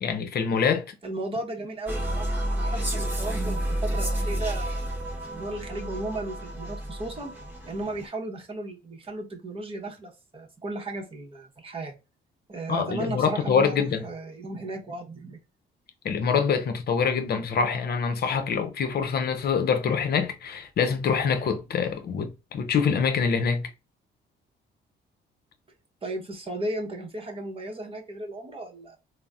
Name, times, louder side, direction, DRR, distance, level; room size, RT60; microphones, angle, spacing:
voice 1, 0.0-0.9 12.7-14.0 16.0-23.7, left 6 dB, 50° left, 0.7 m, -25 dB
voice 2, 1.0-4.8 5.3-7.3 7.7-11.9 12.5-15.4 26.0-29.0, right 2 dB, 30° right, 0.9 m, -35 dB
sound 1, 1.9-8.1, right 1 dB, 10° right, 1.3 m, -30 dB
3.9 x 2.1 x 2.3 m
cardioid pair, 90°, 20 cm